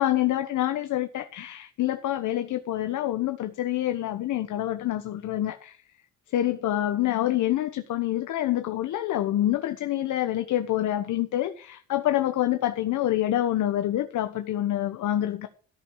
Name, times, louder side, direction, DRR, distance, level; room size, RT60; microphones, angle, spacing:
voice 1, 0.0-5.8 6.3-15.5, left 13 dB, 75° left, 1.1 m, -26 dB
14.0 x 5.7 x 7.0 m
cardioid pair, 90°, 30 cm